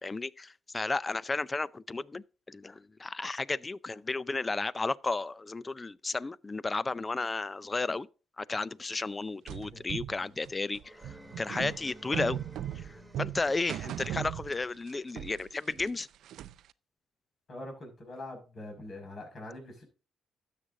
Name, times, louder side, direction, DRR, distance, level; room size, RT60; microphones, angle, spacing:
voice 1, 0.0-8.1 8.4-11.0 11.4-12.4 12.8-16.1, left 3 dB, 25° left, 0.4 m, -33 dB
garbage can, 9.5-14.9 15.2-16.7, right 11 dB, 80° right, 0.4 m, -38 dB
sound 1, 10.8-13.7, equal, ahead, 3.6 m, -52 dB
voice 2, 17.5-19.8, left 1 dB, 45° left, 5.7 m, -44 dB
12.5 x 7.5 x 2.6 m
cardioid pair, 90°, 0 cm